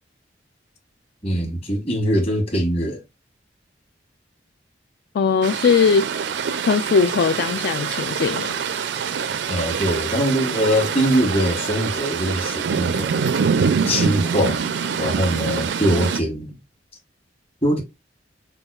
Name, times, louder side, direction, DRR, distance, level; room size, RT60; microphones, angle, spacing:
voice 1, 1.2-3.0 9.5-13.1 13.9-14.6 15.0-16.6 17.6-17.8, equal, 35° left, 1.3 m, -22 dB
voice 2, 5.1-6.1 6.7-8.6, left 5 dB, 60° left, 0.3 m, -19 dB
sound 1, 5.4-16.2, right 6 dB, 70° right, 0.4 m, -25 dB
5.3 x 2.3 x 2.3 m
head